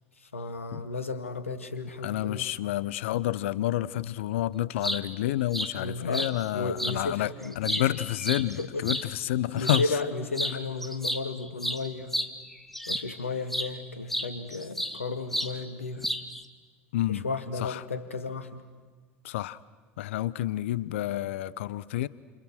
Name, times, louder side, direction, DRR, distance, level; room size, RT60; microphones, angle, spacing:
voice 1, 0.2-2.5 5.7-7.9 8.6-8.9 9.5-12.2 12.9-16.1 17.1-18.6, left 3 dB, 85° left, 2.0 m, -34 dB
voice 2, 2.0-9.9 16.9-17.3 17.6-17.8 19.2-19.6 20.0-22.1, left 14 dB, 70° left, 0.9 m, -29 dB
sound 1, 4.6-5.0 5.5-5.7 6.1-6.3 6.8-7.0 7.4-9.0 9.6-9.9 10.3-10.6 10.8-13.1 13.5-13.7 14.1-15.0 15.3-15.5 16.0-16.4, equal, 5° left, 2.2 m, -31 dB
29.5 x 29.0 x 6.4 m
figure-of-eight pair, 70°, 7 cm